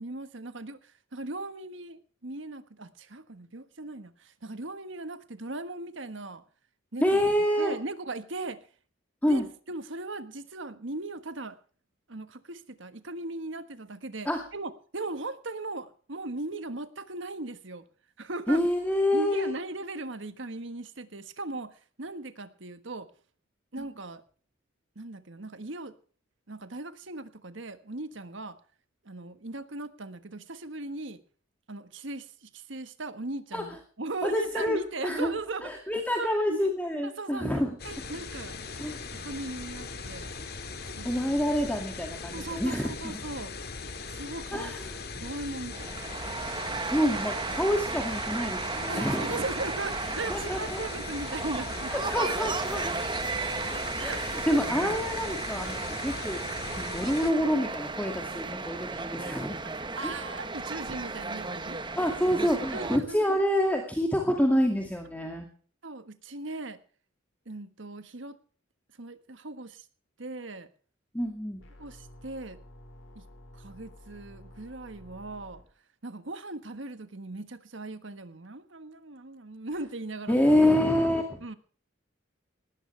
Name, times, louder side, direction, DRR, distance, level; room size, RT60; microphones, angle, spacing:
voice 1, 0.0-6.4 6.9-7.2 7.6-8.6 9.2-11.6 12.1-17.9 18.2-18.6 19.1-23.1 23.7-24.2 24.9-25.9 26.5-28.6 29.0-31.2 31.7-35.9 36.2-36.7 37.0-38.5 39.2-40.3 41.0-41.1 42.3-43.5 44.1-44.7 45.1-46.0 48.9-51.9 54.0-54.2 59.9-61.9 62.7-63.4 65.8-66.8 67.5-68.4 69.0-69.9 70.2-70.7 71.8-72.6 73.1-73.2 73.5-75.6 76.0-80.4 81.4-81.6, right 2 dB, 65° right, 11 dB, 1.4 m, -38 dB
voice 2, 7.0-7.7 9.2-9.4 14.3-14.4 18.5-19.5 23.8-23.9 33.5-33.6 34.2-35.3 35.6-37.8 38.8-39.0 41.0-43.2 44.5-45.0 46.9-49.3 50.3-50.8 51.9-53.0 54.0-56.4 56.8-59.6 60.0-60.2 61.9-65.5 71.1-71.6 80.3-81.4, equal, 10° left, 2 dB, 2.2 m, -27 dB
sound 1, 37.8-57.3, left 4 dB, 50° left, 2.1 m, -39 dB
sound 2, 45.7-63.0, right 3 dB, 25° right, 1.2 m, -34 dB
sound 3, 71.6-75.6, left 1 dB, 70° left, 5.7 m, -51 dB
19.0 x 16.0 x 3.3 m, 0.42 s
head